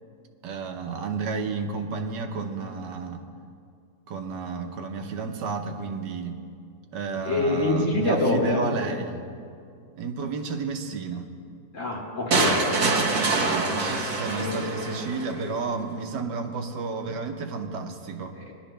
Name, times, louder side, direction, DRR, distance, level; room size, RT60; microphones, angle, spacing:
voice 1, 0.4-3.2 4.1-6.4 6.9-9.2 9.9-11.3 12.5-18.4, right 4 dB, 90° right, 5 dB, 1.5 m, -32 dB
voice 2, 7.3-8.7 11.7-12.6 14.2-15.6 18.3-18.5, left 2 dB, 45° left, -3 dB, 2.7 m, -27 dB
sound 1, 12.3-15.3, right 3 dB, 65° right, 1.8 m, -25 dB
21.0 x 11.5 x 3.3 m, 2.3 s
omnidirectional pair, 1.8 m